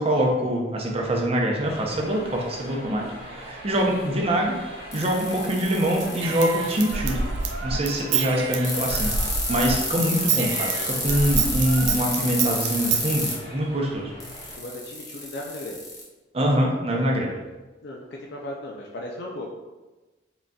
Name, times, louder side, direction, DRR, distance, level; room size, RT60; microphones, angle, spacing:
voice 1, 0.0-4.6 4.9-7.2 7.6-9.1 9.5-14.1 16.3-17.3, equal, 35° right, 0 dB, 0.6 m, -24 dB
sound 1, 1.6-14.6, equal, 35° left, 1.2 m, -41 dB
sound 2, 4.9-6.9 8.6-13.3 14.2-16.0, left 2 dB, 20° left, 0.8 m, -30 dB
Human voice / Scissors, 6.0-9.8 10.0-13.0, right 5 dB, 85° right, 0.4 m, -27 dB
voice 2, 14.6-15.8 17.8-19.5, left 1 dB, 65° left, -2 dB, 0.4 m, -36 dB
3.8 x 3.8 x 2.3 m, 1.2 s
head